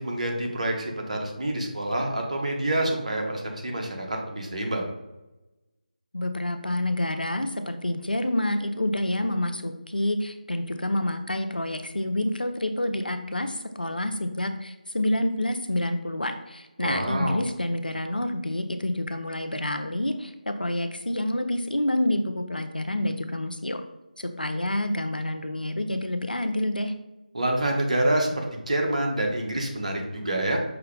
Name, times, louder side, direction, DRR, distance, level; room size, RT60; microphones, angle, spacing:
voice 1, 0.0-4.9 16.8-17.4 27.3-30.6, right 1 dB, 50° right, 1 dB, 0.9 m, -27 dB
voice 2, 6.1-23.8 24.2-26.9, left 1 dB, 85° left, 8 dB, 0.5 m, -28 dB
5.6 x 2.1 x 3.7 m, 1.0 s
figure-of-eight pair, 160°, 5 cm